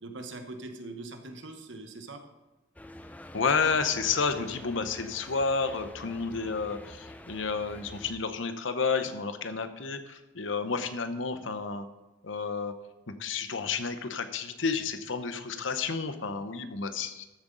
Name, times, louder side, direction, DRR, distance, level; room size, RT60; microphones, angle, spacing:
voice 1, 0.0-2.2, right 2 dB, 80° right, 6 dB, 1.2 m, -42 dB
sound 1, 2.8-8.1, left 1 dB, 10° left, 0.4 m, -47 dB
voice 2, 3.3-11.9 12.2-12.7 13.2-17.2, left 5 dB, 85° left, 9 dB, 0.9 m, -31 dB
13.5 x 7.8 x 3.9 m, 1.0 s
head